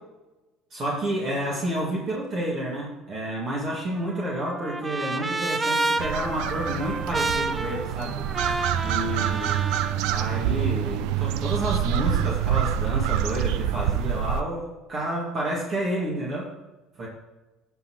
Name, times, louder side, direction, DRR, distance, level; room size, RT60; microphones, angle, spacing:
voice 1, 0.7-8.3 8.8-9.7 10.1-16.5 17.0-17.1, right 1 dB, 45° right, -3 dB, 2.4 m, -30 dB
Trumpet, 3.7-10.0, right 2 dB, 20° right, 0.7 m, -30 dB
sound 1, 6.0-14.4, right 10 dB, 65° right, 0.4 m, -26 dB
17.5 x 6.2 x 3.2 m, 1.1 s
figure-of-eight pair, 60°, 0 cm